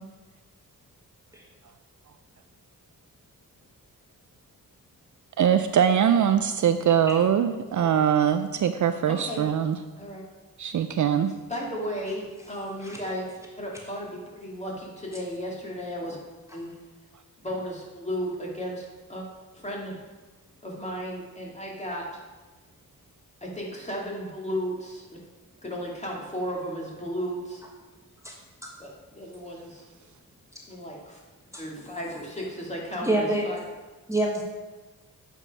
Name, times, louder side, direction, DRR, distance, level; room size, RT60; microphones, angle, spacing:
voice 1, 5.4-9.8 10.6-11.3, right 8 dB, 55° right, 9 dB, 0.5 m, -22 dB
voice 2, 9.1-9.5 10.0-10.2 11.5-13.3 13.6-16.2 16.5-16.7 17.4-19.2 19.5-20.0 20.6-22.1 23.4-25.2 25.6-27.6 28.8-29.8 30.7-31.2 31.6-33.6, equal, 20° left, -3 dB, 2.5 m, -34 dB
voice 3, 33.0-33.5 34.1-34.5, right 1 dB, 10° right, -1 dB, 1.3 m, -27 dB
8.3 x 5.4 x 5.4 m, 1.2 s
cardioid pair, 95°, 36 cm